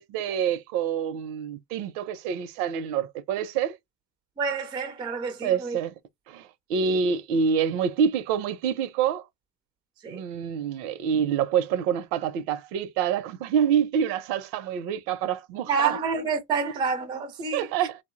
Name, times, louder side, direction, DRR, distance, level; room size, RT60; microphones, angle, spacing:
voice 1, 0.0-3.8 5.4-5.9 6.3-9.2 10.1-16.0 17.5-18.0, right 7 dB, 65° right, 0.6 m, -27 dB
voice 2, 4.4-5.8 10.0-10.2 15.7-17.9, right 5 dB, 10° right, 0.3 m, -28 dB
2.5 x 2.0 x 2.4 m
hypercardioid pair, 90°, 50 cm